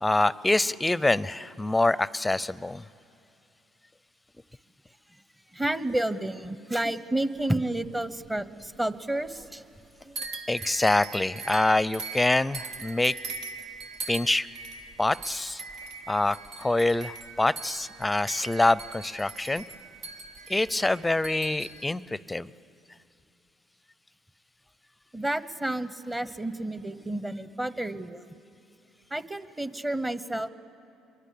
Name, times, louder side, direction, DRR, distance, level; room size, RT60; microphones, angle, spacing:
voice 1, 0.0-2.8 10.5-13.2 14.1-14.5 15.0-15.6 16.1-19.6 20.5-22.5, left 2 dB, 10° left, 18 dB, 0.6 m, -25 dB
voice 2, 5.5-9.6 10.0-10.2 25.1-28.2 29.1-30.5, right 1 dB, 15° right, 13 dB, 1.1 m, -30 dB
sound 1, 7.3-8.9 9.2-9.9 10.1-21.8, right 3 dB, 65° right, 1.6 m, -41 dB
26.5 x 23.5 x 8.6 m, 2.8 s
supercardioid pair, 80°, 0 cm